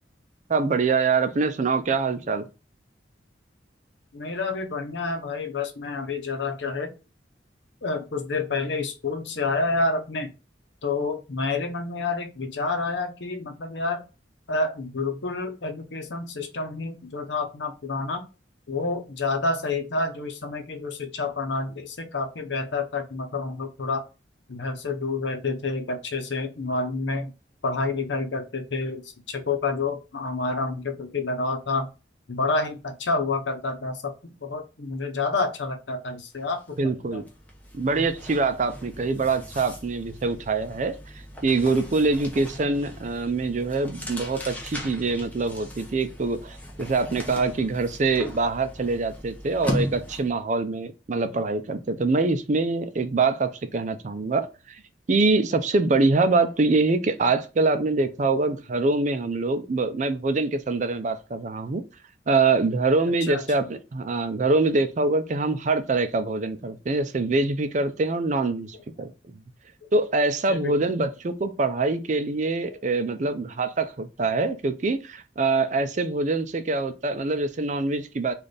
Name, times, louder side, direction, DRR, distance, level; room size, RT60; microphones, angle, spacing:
voice 1, 0.5-2.4 36.8-37.2 37.7-41.0 41.4-54.8 55.1-61.8 62.3-69.1 69.9-78.3, right 3 dB, 40° right, 0.4 m, -24 dB
voice 2, 4.1-6.9 7.8-10.3 10.8-14.0 14.5-18.2 18.7-24.0 24.5-27.3 27.6-31.9 32.3-37.2 63.2-63.4 70.5-70.7, left 3 dB, 80° left, 0.8 m, -29 dB
sound 1, 36.5-36.7 37.0-50.4, equal, 10° left, 0.7 m, -37 dB
4.1 x 2.5 x 3.3 m
head